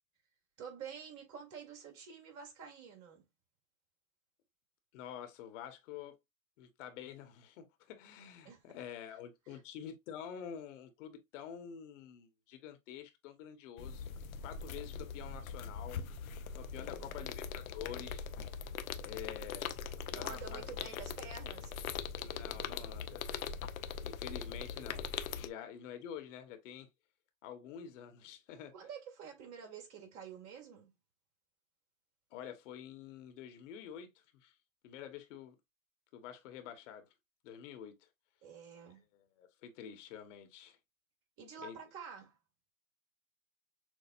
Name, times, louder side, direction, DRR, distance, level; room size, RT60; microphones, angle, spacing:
voice 1, 0.6-3.3 8.4-8.6 9.5-9.6 16.7-17.3 20.1-21.7 28.7-30.9 38.4-39.1 41.4-42.4, right 6 dB, 50° right, 2.3 m, -49 dB
voice 2, 4.9-6.2 6.6-14.1 14.4-16.0 16.5-18.3 19.0-19.7 20.1-21.0 22.1-23.3 24.0-25.1 25.3-26.9 27.4-28.7 32.3-34.1 34.4-34.5 34.8-35.6 36.1-37.1 37.4-38.1 39.1-40.8 41.6-41.8, left 9 dB, 65° left, 1.3 m, -48 dB
sound 1, 13.8-25.5, left 6 dB, 85° left, 0.7 m, -41 dB
6.4 x 2.4 x 2.4 m
hypercardioid pair, 100°, 41 cm